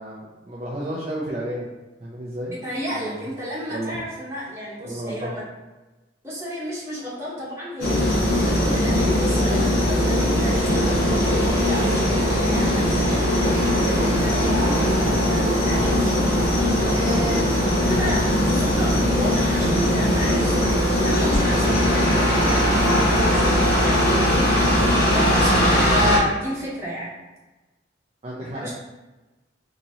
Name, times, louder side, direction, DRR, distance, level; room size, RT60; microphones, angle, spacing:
voice 1, 0.0-1.7 2.0-2.6 2.9-3.3 3.7-4.0 4.8-5.3 15.0-15.2 28.2-28.7, right 1 dB, 35° right, -6 dB, 0.5 m, -32 dB
voice 2, 2.6-5.4 6.2-8.0 8.3-12.0 12.4-16.6 16.9-17.6 17.9-24.2 25.1-27.1 28.5-28.7, equal, 15° right, -8 dB, 1.1 m, -32 dB
sound 1, 7.8-26.2, equal, 55° left, 0.9 m, -20 dB
3.9 x 2.9 x 2.8 m, 1.1 s
head